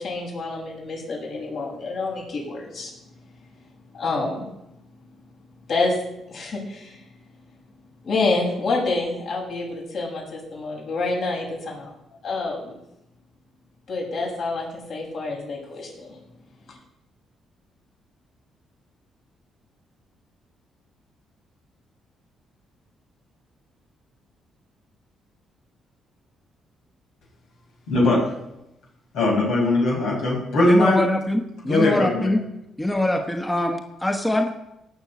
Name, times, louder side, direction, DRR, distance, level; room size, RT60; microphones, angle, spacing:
voice 1, 0.0-2.9 3.9-4.5 5.7-6.0 6.3-7.0 8.0-11.9 12.2-12.8 13.9-16.2 16.7-16.8, left 3 dB, 60° left, -3 dB, 6.9 m, -27 dB
voice 2, 27.9-28.2 29.1-31.0 31.7-32.3, left 2 dB, 85° left, -3 dB, 5.8 m, -20 dB
voice 3, 30.6-32.4 32.8-34.5, left 1 dB, 10° left, 4 dB, 1.2 m, -23 dB
17.0 x 6.2 x 8.4 m, 0.88 s
cardioid pair, 90°, 0 cm